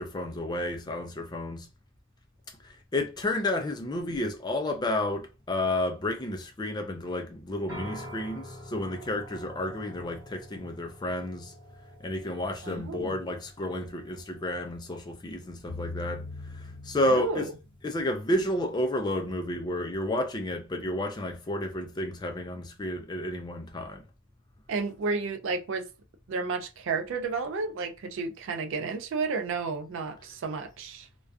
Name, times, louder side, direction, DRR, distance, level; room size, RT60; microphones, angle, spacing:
voice 1, 0.0-1.7 2.6-11.5 12.0-16.3 16.5-17.5 17.8-24.0, left 1 dB, 20° left, 0.3 m, -31 dB
sound 1, 7.7-19.4, equal, 20° right, 1.2 m, -48 dB
voice 2, 12.6-13.2 17.1-17.5 24.7-25.9 26.3-31.1, right 4 dB, 60° right, 0.3 m, -32 dB
sound 2, 15.7-17.9, left 3 dB, 65° left, 0.6 m, -41 dB
2.4 x 2.2 x 2.3 m
head